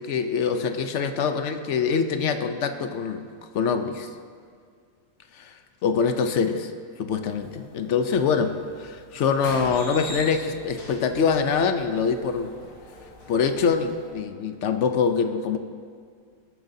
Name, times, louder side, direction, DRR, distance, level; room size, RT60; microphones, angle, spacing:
voice 1, 0.0-3.2 3.5-4.1 5.3-5.5 5.8-6.7 7.0-12.5 13.3-15.6, left 6 dB, 60° left, 7 dB, 0.9 m, -24 dB
sound 1, 7.3-14.1, equal, 75° left, 2.9 m, -42 dB
19.0 x 8.9 x 2.7 m, 2.1 s
omnidirectional pair, 1.6 m